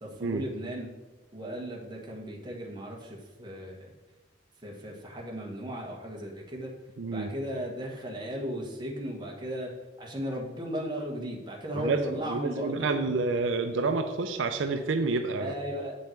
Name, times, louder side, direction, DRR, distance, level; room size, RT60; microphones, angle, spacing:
voice 1, 0.0-0.9 1.3-3.9 4.6-6.7 7.1-9.7 10.0-12.9 15.4-15.9, equal, 20° right, -1 dB, 1.3 m, -36 dB
voice 2, 7.0-7.3 11.7-12.0 12.3-15.5, right 3 dB, 75° right, 7 dB, 0.5 m, -28 dB
7.7 x 5.4 x 4.5 m, 1.1 s
head